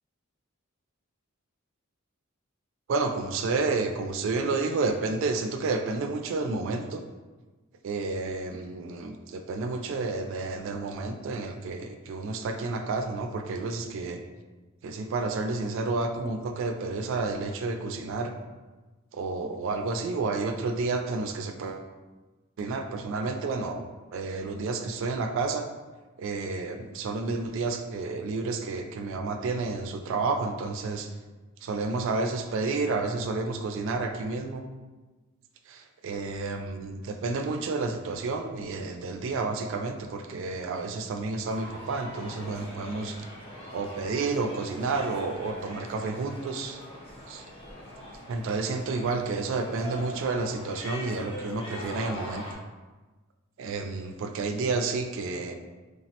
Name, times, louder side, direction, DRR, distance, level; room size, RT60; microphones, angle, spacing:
voice 1, 2.9-7.0 7.8-14.2 14.8-18.3 19.1-21.9 22.6-23.8 24.1-25.7 26.2-31.1 31.6-34.6 35.7-43.2 43.7-46.8 47.3-47.4 48.3-52.4 53.6-55.6, right 3 dB, 65° right, 5 dB, 0.3 m, -30 dB
sound 1, 41.5-52.5, left 1 dB, 30° left, 0.5 m, -42 dB
3.3 x 2.1 x 2.8 m, 1.2 s
head